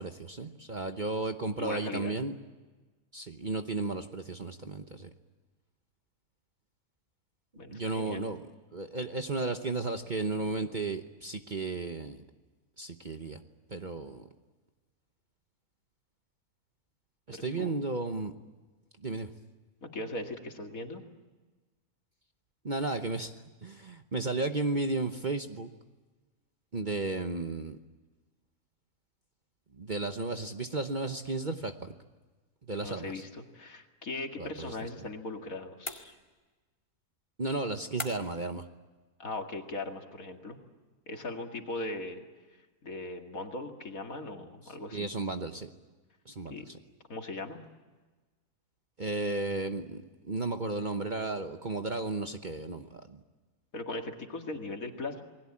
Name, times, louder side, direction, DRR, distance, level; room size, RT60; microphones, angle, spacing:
voice 1, 0.0-2.3 3.1-5.1 7.7-8.4 8.7-12.2 12.8-13.4 13.7-14.3 17.3-18.3 19.0-19.3 22.6-25.7 26.7-27.8 29.7-32.0 32.7-33.2 34.4-34.8 37.4-38.7 44.9-45.7 46.2-46.8 49.0-53.2, right 3 dB, 35° right, 6 dB, 1.0 m, -34 dB
voice 2, 1.6-2.1 7.6-8.2 17.3-17.8 19.8-21.0 32.8-36.2 39.2-40.6 41.1-42.2 42.8-45.1 46.5-46.7 47.1-47.6 53.7-55.2, left 2 dB, 65° left, 3 dB, 2.6 m, -39 dB
sound 1, 35.8-36.6 38.0-38.5, left 2 dB, 20° left, 2.0 m, -41 dB
29.0 x 20.5 x 8.6 m, 1.3 s
omnidirectional pair, 1.6 m